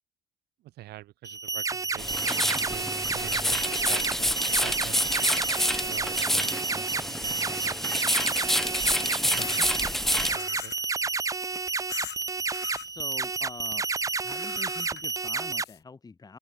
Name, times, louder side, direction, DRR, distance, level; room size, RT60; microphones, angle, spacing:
voice 1, 0.6-5.1 5.8-6.8 7.1-7.4 9.2-9.8 10.1-10.7, right 16 dB, 75° right, 1.1 m, -45 dB
sound 1, 1.2-15.6, right 4 dB, 20° right, 0.7 m, -30 dB
sound 2, 2.0-10.4, left 1 dB, ahead, 0.3 m, -28 dB
sound 3, 7.7-8.7 9.4-9.6 10.3-10.8 11.9-12.2 12.5-12.9 14.3-15.8, left 16 dB, 75° left, 1.4 m, -42 dB
voice 2, 9.2-9.7 12.8-13.9 14.2-16.4, left 4 dB, 20° left, 2.1 m, -45 dB
cardioid pair, 110°, 17 cm